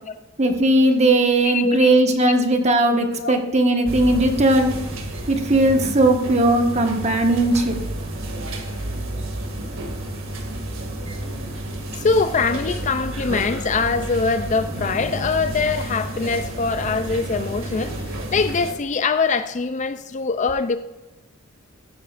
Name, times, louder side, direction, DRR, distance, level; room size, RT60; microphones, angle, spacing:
voice 1, 0.4-4.7 5.3-7.8, right 1 dB, 30° right, 1.4 m, -18 dB
voice 2, 1.4-2.0 3.2-3.3 12.0-20.8, left 4 dB, 35° left, 0.4 m, -23 dB
sound 1, 3.9-18.7, right 1 dB, 65° right, 2.2 m, -31 dB
15.5 x 11.5 x 2.5 m
head